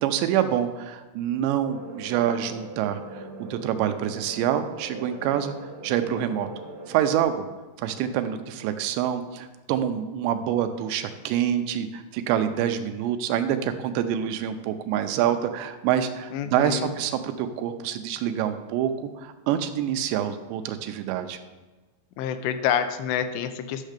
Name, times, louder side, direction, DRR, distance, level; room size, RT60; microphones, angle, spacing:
voice 1, 0.0-3.2 3.5-5.6 5.8-6.5 6.9-7.5 7.8-18.9 19.2-21.4, right 10 dB, 90° right, 8 dB, 2.9 m, -26 dB
sound 1, 1.7-7.2, right 2 dB, 55° right, 3.4 m, -41 dB
voice 2, 16.3-16.9 22.2-23.9, left 9 dB, 85° left, 9 dB, 2.9 m, -27 dB
11.5 x 6.5 x 5.1 m, 1.2 s
omnidirectional pair, 5.1 m